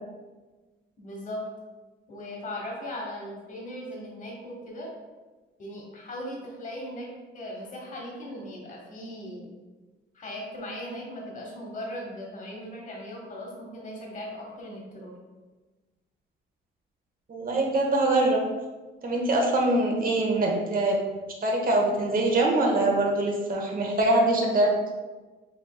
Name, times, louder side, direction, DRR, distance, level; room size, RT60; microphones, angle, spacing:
voice 1, 1.0-1.4 2.1-4.9 5.6-7.1 7.3-9.5 10.1-15.1, left 1 dB, 40° left, -1 dB, 1.1 m, -38 dB
voice 2, 17.3-18.4 19.0-21.0 21.4-24.7, right 2 dB, 45° right, 0 dB, 1.0 m, -23 dB
5.1 x 3.1 x 2.3 m, 1.2 s
cardioid pair, 90°, 20 cm